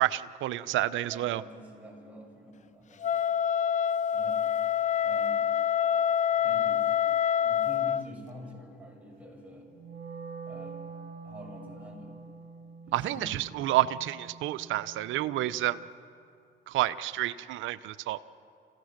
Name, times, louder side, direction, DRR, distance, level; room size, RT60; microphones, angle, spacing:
voice 1, 0.0-1.4 12.9-15.8 16.7-18.2, right 14 dB, 75° right, 15 dB, 0.7 m, -29 dB
voice 2, 1.1-3.0 4.1-4.4 5.0-5.4 6.4-7.0 7.4-9.7 10.5-10.8 11.2-12.1 12.8-13.3, equal, 5° right, -2 dB, 7.8 m, -46 dB
Wind instrument woodwind instrument, 3.0-8.0, left 9 dB, 35° left, 0.5 m, -26 dB
Wind instrument woodwind instrument 2, 9.7-15.9, right 5 dB, 50° right, 2.5 m, -46 dB
29.5 x 16.0 x 6.6 m, 2.5 s
supercardioid pair, 60°, 20 cm